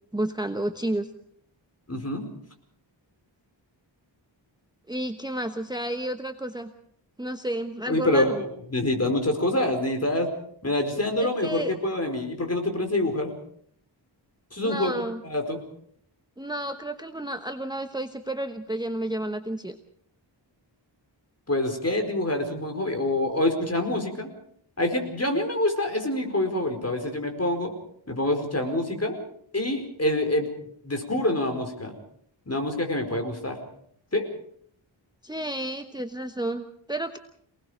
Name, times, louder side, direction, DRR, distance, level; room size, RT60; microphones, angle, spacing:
voice 1, 0.1-1.1 4.9-6.7 7.2-8.4 11.2-11.7 14.6-15.2 16.4-19.8 35.2-37.2, right 1 dB, 10° right, 7 dB, 1.1 m, -31 dB
voice 2, 1.9-2.2 7.9-10.3 10.6-13.3 14.5-15.6 21.5-24.3 24.8-27.7 28.1-29.2 29.5-30.5 30.8-31.9 32.5-33.6 34.1-34.3, left 1 dB, 35° left, 5 dB, 4.7 m, -26 dB
28.0 x 19.5 x 5.1 m, 0.66 s
wide cardioid pair, 85°, 46 cm